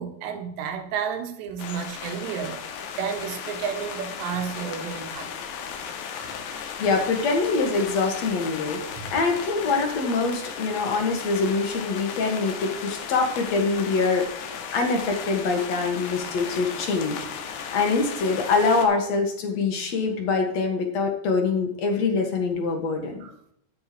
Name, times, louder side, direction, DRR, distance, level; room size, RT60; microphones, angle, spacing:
voice 1, 0.0-2.6 3.0-5.3 9.0-9.1 23.2-23.3, right 7 dB, 80° right, 4 dB, 3.5 m, -31 dB
sound 1, 1.6-18.9, left 7 dB, 80° left, 3.4 m, -36 dB
voice 2, 6.8-8.8 9.1-17.3 17.7-23.3, left 4 dB, 50° left, 3 dB, 2.4 m, -24 dB
12.5 x 9.4 x 3.2 m, 0.72 s
omnidirectional pair, 4.9 m